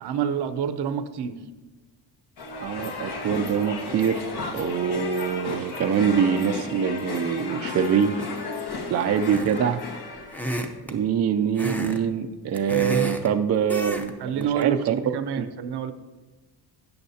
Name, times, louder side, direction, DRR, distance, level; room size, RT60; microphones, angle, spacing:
voice 1, 0.0-1.4 14.2-14.8 15.1-15.9, right 8 dB, 70° right, 10 dB, 0.7 m, -28 dB
sound 1, 2.4-10.4, left 3 dB, 65° left, 1.5 m, -34 dB
voice 2, 2.6-4.2 4.5-8.2 8.9-9.8 10.9-14.9 15.4-15.5, right 7 dB, 40° right, 7 dB, 0.4 m, -24 dB
sound 2, 9.3-9.7 10.3-11.0 11.6-12.0 12.3-13.3 13.7-14.1 14.4-14.6, equal, 5° left, 0.6 m, -30 dB
13.0 x 8.4 x 2.8 m, 1.2 s
cardioid pair, 145°, 42 cm